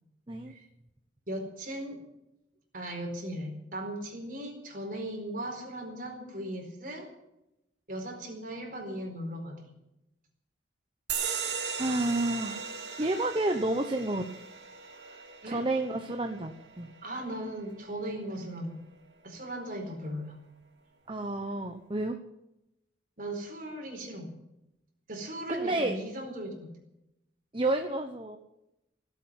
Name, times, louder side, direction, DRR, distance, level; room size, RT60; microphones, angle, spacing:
voice 1, 1.3-2.0 2.7-7.1 7.9-9.7 12.9-13.2 15.4-15.6 17.0-18.8 19.2-20.3 23.2-24.3 25.1-26.7, right 1 dB, 45° right, 2 dB, 4.5 m, -38 dB
sound 1, 11.1-18.2, right 7 dB, 75° right, 2.5 m, -38 dB
voice 2, 11.5-12.7 13.0-14.4 15.0-16.9 21.1-22.2 25.5-26.0 27.5-28.4, right 2 dB, 25° right, 5 dB, 1.0 m, -31 dB
17.5 x 8.2 x 9.7 m, 0.89 s
head